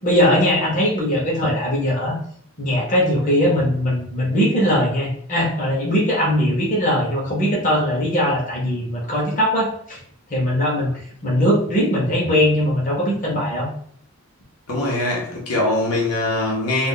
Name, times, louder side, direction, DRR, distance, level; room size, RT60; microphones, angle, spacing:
voice 1, 0.0-2.1 2.6-10.0 10.3-10.9 11.2-13.7, equal, 35° left, -4 dB, 0.8 m, -20 dB
voice 2, 14.7-16.9, left 1 dB, 85° left, -3 dB, 1.0 m, -22 dB
2.5 x 2.3 x 3.8 m, 0.62 s
head